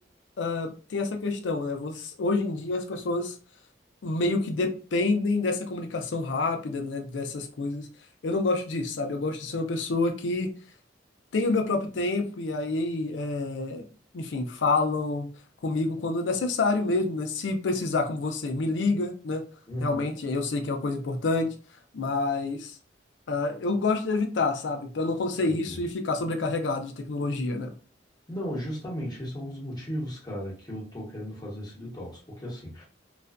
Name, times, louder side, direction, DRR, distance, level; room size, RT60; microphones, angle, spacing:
voice 1, 0.4-3.3 4.0-7.9 8.2-10.5 11.3-13.8 14.1-15.3 15.6-19.4 19.8-21.5 21.9-22.8 23.3-27.7, left 3 dB, 85° left, 0.5 m, -28 dB
voice 2, 19.7-20.1 25.5-25.8 28.3-32.8, equal, 25° left, 1.0 m, -35 dB
2.4 x 2.1 x 2.4 m
head